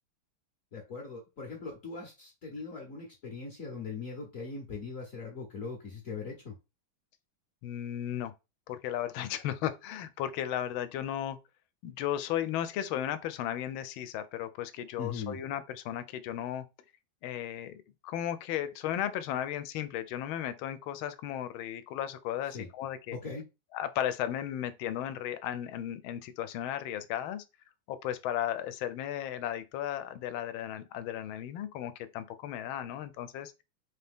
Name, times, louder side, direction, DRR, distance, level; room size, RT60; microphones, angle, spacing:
voice 1, 0.7-6.5 15.0-15.4 22.5-22.7 23.1-23.5, left 4 dB, 55° left, 1.0 m, -40 dB
voice 2, 7.6-8.3 8.7-11.4 11.8-16.6 17.2-23.2 23.7-27.4 27.9-33.6, left 11 dB, 85° left, 1.4 m, -35 dB
3.9 x 2.8 x 3.4 m
omnidirectional pair, 2.2 m